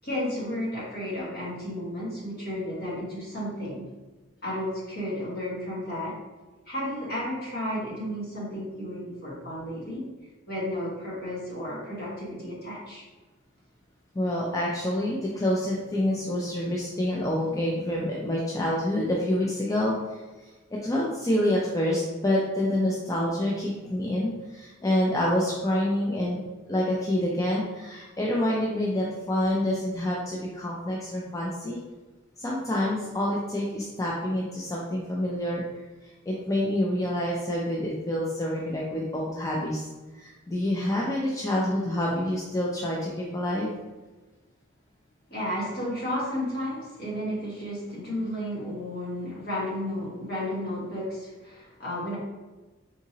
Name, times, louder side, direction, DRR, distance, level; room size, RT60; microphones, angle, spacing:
voice 1, 0.0-3.9 4.4-6.2 6.7-10.1 10.5-13.0 45.3-52.2, left 1 dB, 55° left, -6 dB, 1.4 m, -33 dB
voice 2, 14.1-20.0 20.7-26.4 26.7-31.8 32.4-35.6 36.3-39.9 40.2-43.7, left 1 dB, 15° left, -4 dB, 0.4 m, -27 dB
3.6 x 2.8 x 2.8 m, 1.2 s
head